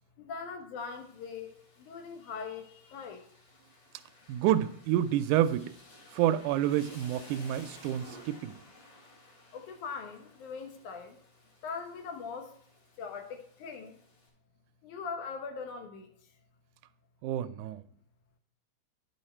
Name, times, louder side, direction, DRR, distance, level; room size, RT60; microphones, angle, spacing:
voice 1, 0.2-3.3 9.5-11.2 11.6-12.6 13.0-14.0 14.8-16.3, left 5 dB, 80° left, 5 dB, 2.5 m, -41 dB
Rain, 0.8-14.3, left 1 dB, 55° left, 3.6 m, -56 dB
voice 2, 4.3-5.7 6.1-8.5 17.2-17.8, right 12 dB, 90° right, 13 dB, 2.1 m, -28 dB
10.0 x 6.4 x 4.3 m, 0.63 s
omnidirectional pair, 3.5 m